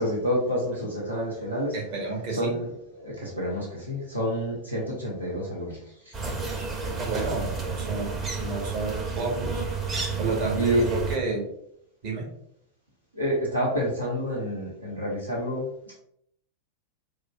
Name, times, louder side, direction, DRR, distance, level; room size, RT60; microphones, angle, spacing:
voice 1, 0.0-1.8 2.3-2.7 2.9-6.1 10.6-10.8 13.1-15.7, equal, 80° right, -3 dB, 0.8 m, -28 dB
voice 2, 1.7-2.5 6.9-9.6 10.2-11.5 12.0-12.3, right 3 dB, 45° right, -1 dB, 1.2 m, -31 dB
sound 1, 6.1-11.2, right 4 dB, 20° right, 0.6 m, -31 dB
4.6 x 2.5 x 2.4 m, 0.71 s
figure-of-eight pair, 90°, 0 cm